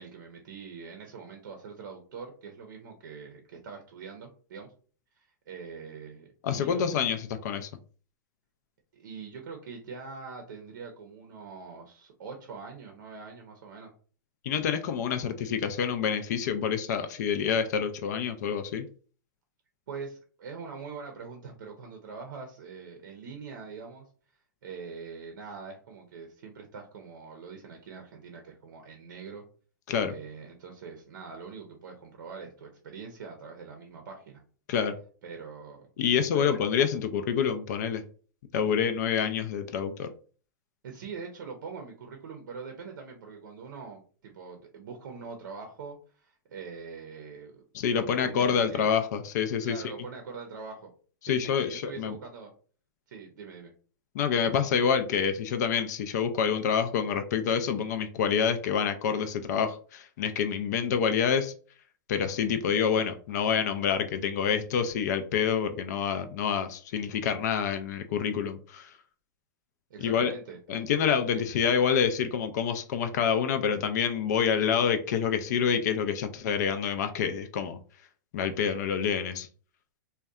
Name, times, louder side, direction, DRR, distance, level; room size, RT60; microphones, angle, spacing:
voice 1, 0.0-4.7 5.1-6.9 8.9-13.9 19.9-24.1 24.6-29.4 30.1-34.4 35.2-35.9 36.3-36.6 40.8-47.6 47.9-48.9 49.6-50.9 51.2-52.5 53.1-53.7 69.9-70.8 71.3-71.4, right 5 dB, 75° right, 3 dB, 0.6 m, -43 dB
voice 2, 6.4-7.7 14.4-18.9 29.9-30.1 34.7-34.9 36.0-38.0 38.5-40.1 47.7-49.8 51.2-52.2 54.1-61.5 62.1-68.9 70.0-70.3 70.7-77.8 78.3-79.5, left 7 dB, 60° left, 8 dB, 0.3 m, -27 dB
2.6 x 2.2 x 2.3 m, 0.41 s
hypercardioid pair, 125°, 10 cm